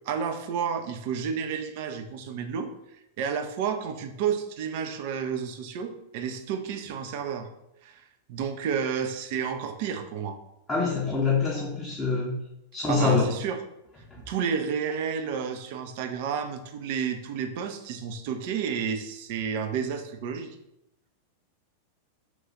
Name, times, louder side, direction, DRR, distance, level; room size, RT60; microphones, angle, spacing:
voice 1, 0.1-2.7 3.2-7.5 7.8-8.0 8.3-10.4 12.9-13.6 14.3-20.6, right 7 dB, 50° right, 7 dB, 0.4 m, -31 dB
voice 2, 10.7-12.4 12.7-13.3, left 4 dB, 15° left, -5 dB, 0.6 m, -25 dB
3.0 x 2.3 x 3.9 m, 0.84 s
figure-of-eight pair, 90°, 0 cm